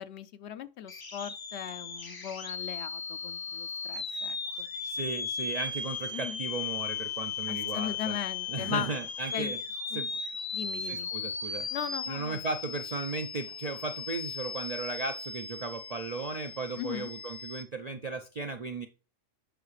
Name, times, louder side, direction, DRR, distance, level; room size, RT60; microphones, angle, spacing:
voice 1, 0.0-4.7 6.1-6.4 7.5-8.9 9.3-9.5 9.9-10.0 10.5-11.1 11.7-12.4 16.8-17.1, left 9 dB, 65° left, 0.8 m, -38 dB
sound 1, 0.9-17.6, left 5 dB, 30° left, 0.4 m, -37 dB
voice 2, 4.8-8.2 8.5-9.6 9.9-10.1 10.8-11.7 12.1-18.9, right 3 dB, 55° right, 0.4 m, -36 dB
8.0 x 5.7 x 3.1 m
omnidirectional pair, 1.3 m